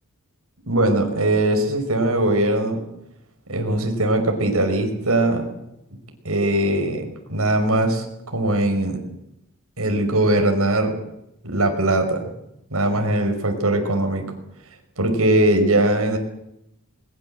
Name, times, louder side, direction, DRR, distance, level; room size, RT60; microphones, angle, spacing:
voice 1, 0.7-2.8 3.5-5.5 6.2-9.0 9.8-11.0 11.4-12.3 12.7-14.3 15.0-16.2, right 1 dB, 80° right, 4 dB, 5.5 m, -20 dB
22.0 x 22.0 x 7.8 m, 0.81 s
head